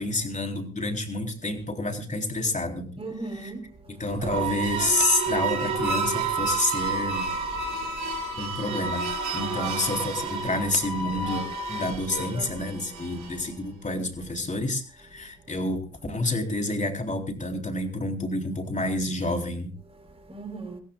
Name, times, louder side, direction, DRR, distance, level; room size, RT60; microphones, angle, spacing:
voice 1, 0.0-2.9 3.9-7.3 8.4-9.1 9.3-19.7, left 2 dB, 25° left, 3.7 m, -29 dB
voice 2, 3.0-3.6 9.4-9.8 12.1-12.8 20.3-20.8, right 2 dB, 20° right, 3.8 m, -38 dB
sound 1, 4.1-13.5, right 4 dB, 80° right, 6.0 m, -30 dB
23.0 x 16.0 x 2.4 m
cardioid pair, 90°, 30 cm